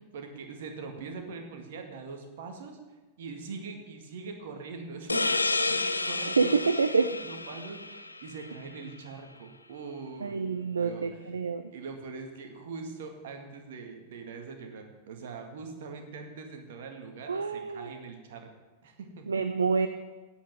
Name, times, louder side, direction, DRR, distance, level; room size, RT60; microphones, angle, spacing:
voice 1, 0.0-2.8 3.2-6.6 7.2-11.3 11.7-18.5 18.8-19.3, right 4 dB, 60° right, 4 dB, 1.9 m, -42 dB
sound 1, 5.1-8.5, left 3 dB, 80° left, 0.5 m, -30 dB
voice 2, 6.4-7.1 10.2-11.7 17.3-17.9 19.3-19.9, right 4 dB, 75° right, 10 dB, 0.5 m, -27 dB
8.4 x 8.3 x 9.1 m, 1.2 s
figure-of-eight pair, 90°, 0 cm